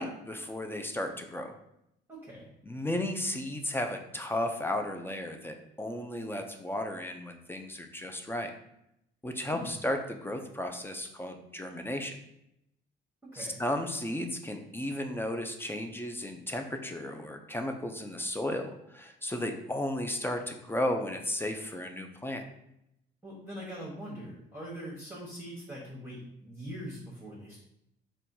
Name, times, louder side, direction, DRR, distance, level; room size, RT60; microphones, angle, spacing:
voice 1, 0.0-1.6 2.7-8.5 9.2-12.2 13.3-22.4, left 1 dB, 10° left, 5 dB, 0.4 m, -34 dB
voice 2, 2.1-2.5 9.5-9.7 13.2-13.6 23.2-27.6, equal, 10° right, -6 dB, 1.2 m, -42 dB
4.1 x 2.3 x 2.7 m, 0.80 s
cardioid pair, 90°, 20 cm